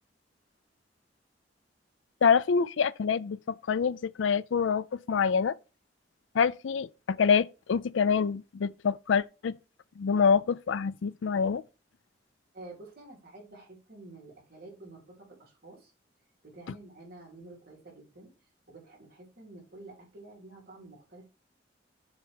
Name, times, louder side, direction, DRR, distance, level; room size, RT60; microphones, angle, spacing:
voice 1, 2.2-5.6 6.3-9.6 10.0-11.6, left 6 dB, 90° left, 0.4 m, -26 dB
voice 2, 12.5-15.9 16.4-18.3 18.7-21.3, right 2 dB, 55° right, 3.7 m, -49 dB
7.2 x 3.4 x 6.3 m
head